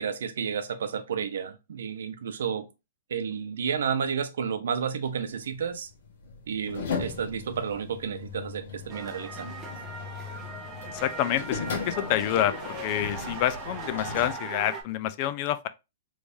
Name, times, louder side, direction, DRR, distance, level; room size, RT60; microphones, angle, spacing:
voice 1, 0.0-2.7 3.1-5.9 6.5-9.6, right 7 dB, 80° right, 0.6 m, -31 dB
sound 1, 5.1-14.3, left 5 dB, 70° left, 1.3 m, -37 dB
sound 2, 8.9-14.8, right 3 dB, 15° right, 0.6 m, -39 dB
voice 2, 10.8-15.7, left 12 dB, 35° left, 0.3 m, -28 dB
3.4 x 3.1 x 2.6 m
hypercardioid pair, 165°, 0 cm